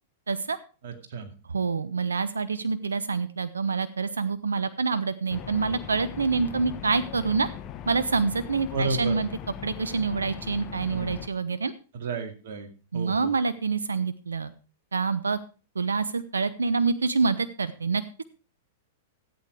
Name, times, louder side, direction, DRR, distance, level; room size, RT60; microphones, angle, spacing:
voice 1, 0.3-0.6 1.5-7.5 7.9-9.3 9.6-11.7 12.9-14.5 14.9-15.4 15.8-18.2, right 4 dB, 85° right, 15 dB, 0.6 m, -26 dB
voice 2, 0.8-1.3 8.7-9.2 10.9-11.2 11.9-12.7 12.9-13.3, right 3 dB, 65° right, 6 dB, 2.4 m, -32 dB
sound 1, 5.3-11.3, left 10 dB, 35° left, 1.2 m, -40 dB
14.0 x 8.5 x 4.7 m, 0.35 s
hypercardioid pair, 105°, 0 cm